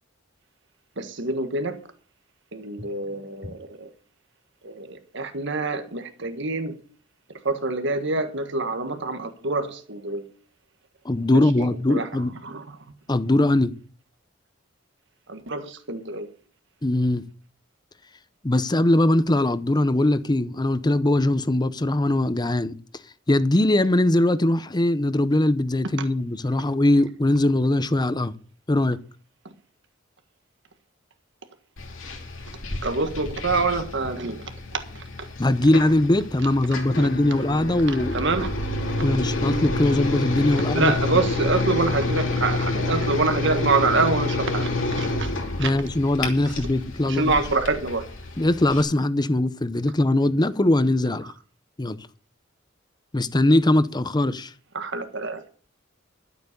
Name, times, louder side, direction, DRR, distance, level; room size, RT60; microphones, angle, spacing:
voice 1, 1.0-1.8 2.5-3.9 4.6-6.7 7.5-10.2 11.6-12.1 12.4-12.8 15.3-16.3 32.8-34.4 38.1-38.5 40.7-45.3 45.6-45.7 47.1-48.0 54.7-55.4, right 3 dB, 65° right, 1.6 m, -26 dB
voice 2, 11.0-12.3 13.1-13.7 16.8-17.2 18.4-22.8 23.3-28.4 28.7-29.0 35.4-38.2 39.0-40.9 45.6-47.3 48.4-51.3 51.8-52.0 53.1-54.5, left 1 dB, 20° left, 0.7 m, -21 dB
sound 1, 31.8-48.8, left 2 dB, 75° left, 3.1 m, -28 dB
12.0 x 8.2 x 6.8 m
head